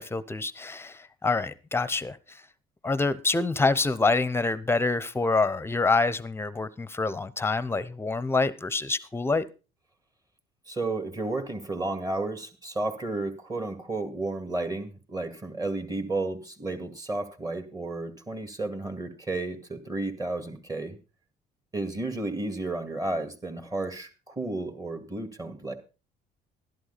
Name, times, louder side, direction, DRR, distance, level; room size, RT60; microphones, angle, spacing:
voice 1, 0.0-2.4 2.8-9.4, left 3 dB, 15° left, 0.8 m, -26 dB
voice 2, 10.7-21.0 21.7-25.8, right 2 dB, 20° right, 2.1 m, -32 dB
12.5 x 11.5 x 4.1 m
cardioid pair, 110°, 17 cm